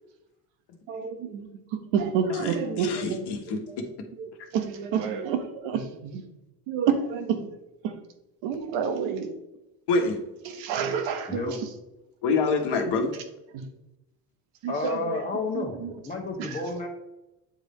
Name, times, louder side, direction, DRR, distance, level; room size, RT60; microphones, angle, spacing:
voice 1, 0.9-3.8 4.2-6.2 6.7-7.5 7.8-8.0 8.4-9.3 10.4-11.7 13.1-13.2 13.5-13.6 14.6-15.9 16.4-16.8, right 7 dB, 70° right, 8 dB, 1.2 m, -30 dB
voice 2, 2.3-3.8 4.4-4.5 9.9-10.2 12.2-13.1, left 4 dB, 60° left, 3 dB, 1.3 m, -26 dB
voice 3, 11.3-11.6 14.7-16.9, left 3 dB, 20° left, -3 dB, 1.2 m, -31 dB
9.0 x 3.3 x 4.1 m, 0.96 s
supercardioid pair, 85°, 47 cm